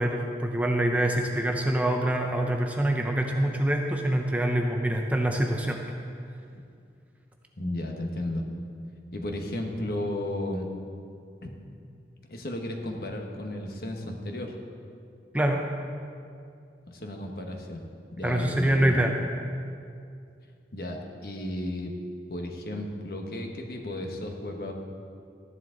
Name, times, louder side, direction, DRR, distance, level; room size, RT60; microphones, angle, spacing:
voice 1, 0.0-5.8 15.3-15.6 18.2-19.1, right 1 dB, 10° right, 2 dB, 0.6 m, -25 dB
voice 2, 7.6-8.4 9.1-10.7 11.4-11.5 12.3-14.6 16.9-19.0 20.7-21.9 22.3-24.7, left 1 dB, 55° left, 2 dB, 1.2 m, -34 dB
13.5 x 10.5 x 3.9 m, 2.4 s
head